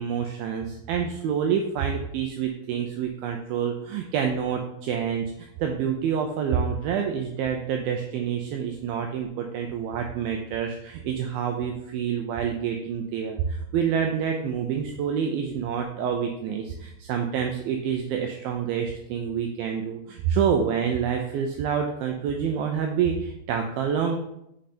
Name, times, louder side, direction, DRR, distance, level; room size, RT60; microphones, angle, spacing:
voice 1, 0.0-24.2, right 7 dB, 85° right, 4 dB, 2.1 m, -27 dB
6.3 x 5.3 x 4.3 m, 0.79 s
omnidirectional pair, 4.9 m